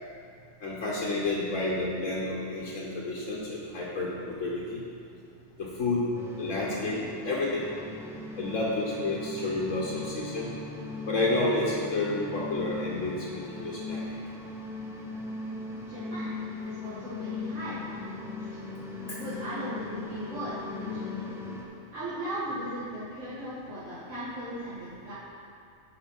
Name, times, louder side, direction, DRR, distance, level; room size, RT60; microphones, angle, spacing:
voice 1, 0.6-4.8 5.6-6.1 6.4-7.6 8.4-10.5 11.1-14.1 19.1-19.2, left 2 dB, 75° left, -5 dB, 1.4 m, -30 dB
sound 1, 6.1-21.7, left 3 dB, 5° right, 0.6 m, -39 dB
voice 2, 15.8-18.5 19.1-21.3 21.9-25.1, equal, 65° right, -12 dB, 1.8 m, -38 dB
8.7 x 5.1 x 5.3 m, 2.5 s
omnidirectional pair, 1.4 m